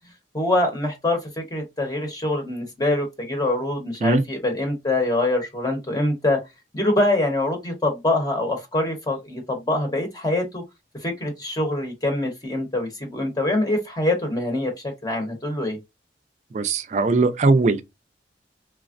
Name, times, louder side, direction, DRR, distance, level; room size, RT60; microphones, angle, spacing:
voice 1, 0.3-6.4 6.7-10.6 11.0-15.8, left 2 dB, 20° left, 0.8 m, -24 dB
voice 2, 16.5-17.8, right 3 dB, 40° right, 0.3 m, -19 dB
3.3 x 2.0 x 2.5 m
head